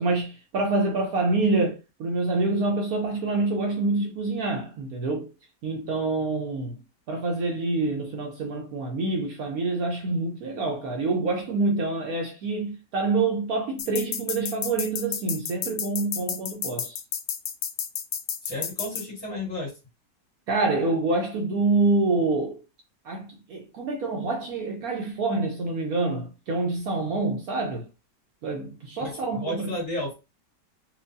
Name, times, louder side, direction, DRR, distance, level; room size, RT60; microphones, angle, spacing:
voice 1, 0.0-5.3 5.6-6.8 7.1-17.0 20.5-22.6 23.0-27.8 28.4-29.7, right 3 dB, 65° right, 1.0 m, -26 dB
sound 1, 13.8-19.0, left 8 dB, 85° left, 1.2 m, -31 dB
voice 2, 18.4-19.7 29.0-30.1, left 1 dB, 40° left, 2.3 m, -32 dB
4.4 x 2.3 x 2.6 m
omnidirectional pair, 1.9 m